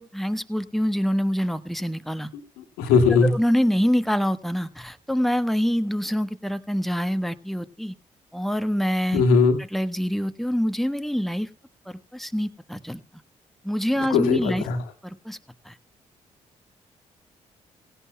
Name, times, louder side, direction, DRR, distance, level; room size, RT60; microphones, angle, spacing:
voice 1, 0.0-2.3 3.1-7.9 8.3-9.2 9.6-11.5 11.9-13.0 13.6-14.7 15.0-15.4 15.6-15.7, equal, ahead, 10 dB, 1.2 m, -25 dB
voice 2, 2.8-3.3 9.1-9.6 14.1-14.8, left 5 dB, 85° left, 5 dB, 1.8 m, -19 dB
17.0 x 16.5 x 2.3 m, 0.37 s
hypercardioid pair, 45°, 16 cm